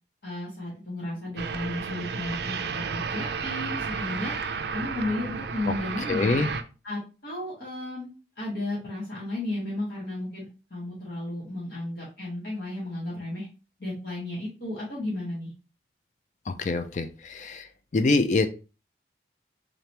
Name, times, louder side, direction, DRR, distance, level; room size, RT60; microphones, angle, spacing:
voice 1, 0.2-4.3 4.7-6.4 6.8-10.4 10.7-13.5 13.8-15.5, left 1 dB, 65° left, -7 dB, 1.4 m, -33 dB
sound 1, 1.4-6.6, right 5 dB, 65° right, 0.4 m, -32 dB
voice 2, 6.1-6.5 16.5-17.6 17.9-18.5, left 3 dB, 40° left, 9 dB, 0.4 m, -25 dB
3.9 x 2.9 x 3.2 m, 0.33 s
head